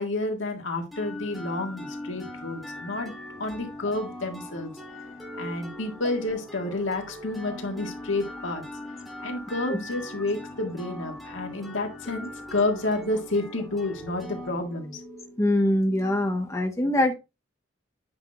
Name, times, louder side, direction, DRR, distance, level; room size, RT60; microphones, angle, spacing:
voice 1, 0.0-3.1 3.4-4.7 5.4-8.6 9.2-15.0, left 2 dB, 75° left, 1.8 m, -30 dB
sound 1, 0.9-16.5, left 1 dB, ahead, 2.3 m, -41 dB
voice 2, 15.4-17.1, left 1 dB, 15° left, 0.8 m, -23 dB
8.8 x 5.7 x 2.4 m
head